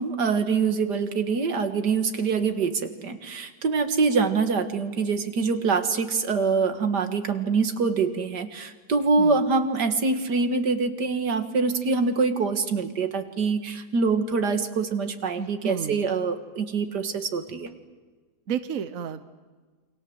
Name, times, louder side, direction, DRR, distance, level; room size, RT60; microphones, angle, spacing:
voice 1, 0.0-17.7, right 4 dB, 80° right, 8 dB, 2.4 m, -25 dB
voice 2, 15.4-16.0 18.5-19.3, right 7 dB, 55° right, 12 dB, 1.4 m, -31 dB
28.5 x 25.0 x 8.0 m, 1.4 s
omnidirectional pair, 1.8 m